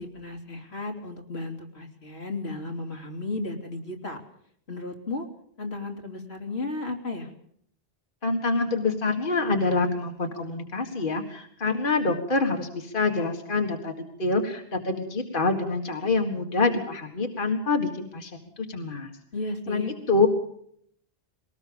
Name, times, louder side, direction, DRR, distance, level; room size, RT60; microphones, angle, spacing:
voice 1, 0.0-4.2 4.7-5.3 5.6-7.3 19.3-19.9, left 2 dB, 85° left, 2 dB, 3.3 m, -34 dB
voice 2, 8.2-13.9 14.2-18.3 18.6-19.1 19.7-19.8 20.1-20.3, left 3 dB, 55° left, 3 dB, 2.0 m, -26 dB
22.0 x 18.5 x 7.0 m, 0.65 s
omnidirectional pair, 1.0 m